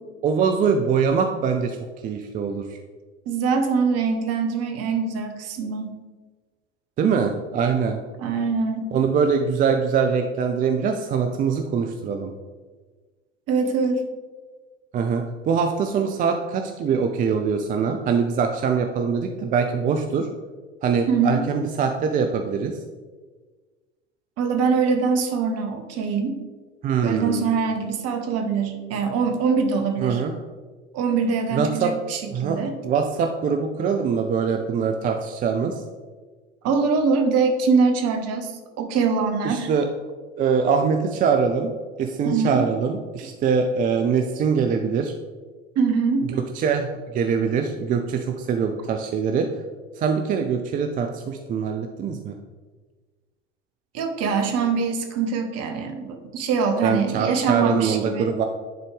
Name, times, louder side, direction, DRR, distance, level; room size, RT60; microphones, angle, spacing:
voice 1, 0.2-1.8 2.0-2.8 7.0-8.0 8.9-12.3 14.9-20.3 20.8-22.8 26.8-27.5 30.0-30.3 31.5-31.9 32.3-35.8 39.4-39.9 40.4-41.7 42.0-45.1 46.2-49.5 50.0-52.4 56.8-58.4, right 6 dB, 25° right, 5 dB, 0.4 m, -23 dB
voice 2, 3.3-5.9 8.2-8.9 13.5-14.0 21.1-21.4 24.4-26.4 27.0-30.2 30.9-32.7 36.6-38.5 38.8-39.7 42.2-42.6 45.7-46.2 53.9-58.3, right 5 dB, 40° right, 5 dB, 1.1 m, -23 dB
10.5 x 4.1 x 3.3 m, 1.4 s
figure-of-eight pair, 80°, 37 cm